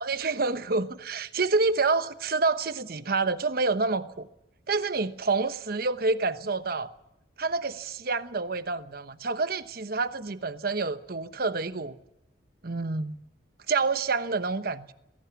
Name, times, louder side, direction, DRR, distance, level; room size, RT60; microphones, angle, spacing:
voice 1, 0.0-4.3 4.7-6.9 7.4-12.0 12.6-13.2 13.7-14.9, right 3 dB, 55° right, 1.0 m, -28 dB
20.5 x 17.5 x 8.3 m
head